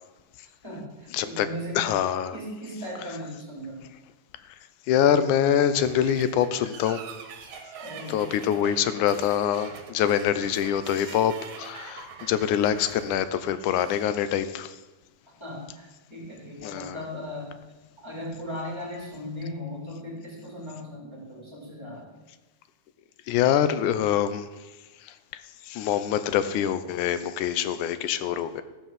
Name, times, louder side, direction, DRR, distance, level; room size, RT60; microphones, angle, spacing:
voice 1, 0.6-1.8 2.3-3.9 7.8-8.7 15.4-17.6 18.0-22.1, left 1 dB, 10° right, -3 dB, 3.6 m, -38 dB
voice 2, 1.1-1.5 1.8-2.4 4.9-7.0 8.1-14.8 16.6-17.0 23.3-24.5 25.0-28.6, left 9 dB, 85° left, 12 dB, 2.2 m, -25 dB
sound 1, 5.7-14.1, right 6 dB, 75° right, 2.6 m, -44 dB
15.0 x 5.8 x 7.5 m, 1.2 s
omnidirectional pair, 3.5 m